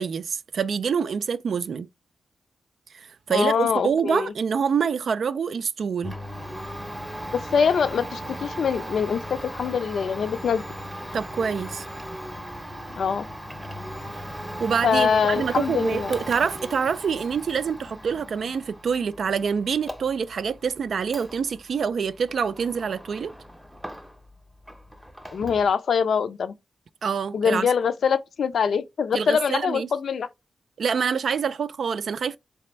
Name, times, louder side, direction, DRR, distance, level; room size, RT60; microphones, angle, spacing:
voice 1, 0.0-1.9 2.9-6.2 11.1-11.9 14.6-23.3 27.0-27.7 29.1-29.9 30.8-32.4, right 6 dB, 70° right, 0.3 m, -26 dB
voice 2, 3.3-4.3 7.3-10.6 13.0-13.3 14.8-16.2 25.3-26.5 27.3-30.3, left 6 dB, 70° left, 0.4 m, -24 dB
Domestic sounds home sounds, 6.0-24.4 24.6-25.7, equal, 5° right, 0.7 m, -38 dB
4.1 x 3.3 x 3.1 m
wide cardioid pair, 100°, 0 cm